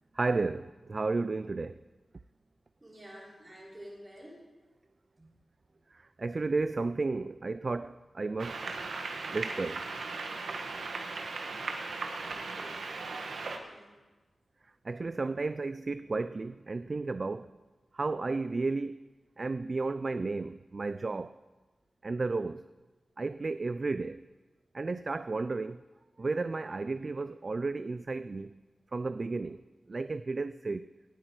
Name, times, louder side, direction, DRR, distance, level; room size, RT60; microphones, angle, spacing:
voice 1, 0.1-1.8 5.9-8.6 9.3-9.8 14.8-17.5 17.9-19.0 19.4-21.3 22.0-22.6 23.2-24.3 24.7-25.8 26.2-28.6 28.9-29.6 29.9-30.9, right 3 dB, 45° right, 0.3 m, -33 dB
voice 2, 2.8-4.5 5.2-5.4 12.3-12.9 13.4-14.0, equal, 25° right, 4.3 m, -50 dB
sound 1, 8.4-13.6, right 3 dB, 90° right, 1.3 m, -37 dB
18.0 x 8.7 x 4.7 m
wide cardioid pair, 95°, 0 cm